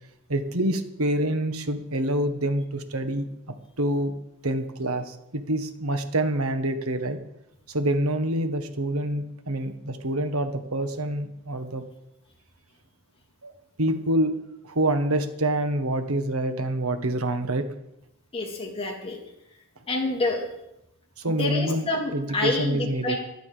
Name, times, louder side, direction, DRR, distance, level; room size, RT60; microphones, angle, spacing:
voice 1, 0.3-3.3 3.8-4.1 4.4-7.2 7.7-11.8 13.4-13.5 13.8-14.3 14.6-17.7 21.2-23.2, right 1 dB, 80° right, 8 dB, 1.5 m, -26 dB
voice 2, 18.3-19.2 19.9-20.4 21.2-23.2, left 2 dB, 25° left, 0 dB, 3.2 m, -28 dB
15.0 x 12.0 x 5.1 m, 0.84 s
head